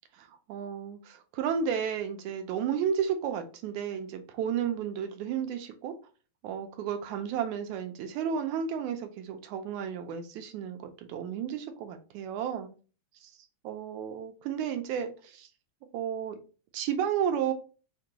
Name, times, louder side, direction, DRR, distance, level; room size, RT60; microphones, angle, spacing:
voice 1, 0.1-5.9 6.4-12.7 13.2-13.3 13.6-15.5 15.9-16.4 16.7-17.5, right 8 dB, 90° right, 2.0 m, -32 dB
5.8 x 2.2 x 2.9 m
omnidirectional pair, 3.4 m